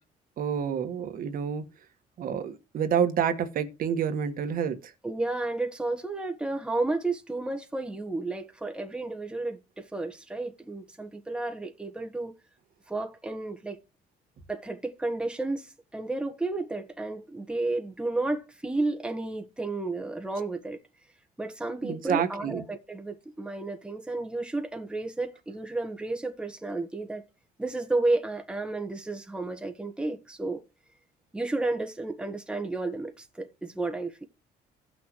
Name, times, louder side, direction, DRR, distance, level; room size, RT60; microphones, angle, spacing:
voice 1, 0.4-1.6 2.2-4.9 21.8-22.6, right 8 dB, 55° right, 1.6 m, -28 dB
voice 2, 5.0-12.3 12.9-13.8 14.5-20.8 21.4-27.2 27.6-30.6 31.3-34.2, right 2 dB, 5° right, 1.3 m, -32 dB
17.0 x 6.2 x 3.1 m
cardioid pair, 110°, 17 cm